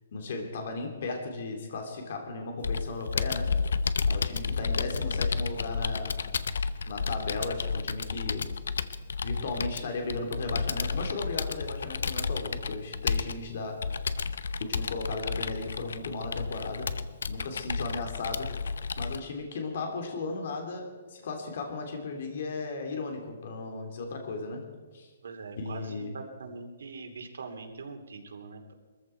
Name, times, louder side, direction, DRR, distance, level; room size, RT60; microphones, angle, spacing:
voice 1, 0.1-3.5 4.1-6.3 6.8-8.5 9.2-14.1 14.6-16.9 17.3-18.5 19.0-24.6 24.9-25.1 25.6-26.1, left 3 dB, 50° left, 3 dB, 2.9 m, -36 dB
Computer keyboard, 2.6-19.2, left 5 dB, 85° left, 0.8 m, -32 dB
voice 2, 25.2-28.7, right 4 dB, 85° right, 4 dB, 2.7 m, -42 dB
22.5 x 14.5 x 4.5 m, 1.3 s
hypercardioid pair, 175°, 0 cm